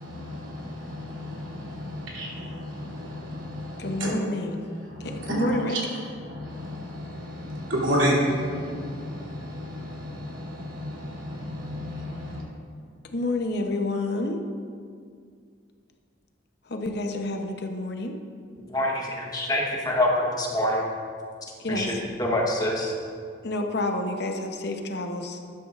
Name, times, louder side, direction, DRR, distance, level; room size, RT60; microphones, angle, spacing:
voice 1, 0.0-4.3 4.6-12.4, equal, 70° right, -5 dB, 2.9 m, -31 dB
voice 2, 3.8-4.6 5.0-5.8 13.1-14.4 16.7-18.1 21.6-22.0 23.4-25.4, left 2 dB, 55° left, 3 dB, 0.8 m, -29 dB
voice 3, 18.7-20.8 21.7-22.9, left 1 dB, 20° left, -2 dB, 1.1 m, -26 dB
12.5 x 11.5 x 2.5 m, 2.2 s
head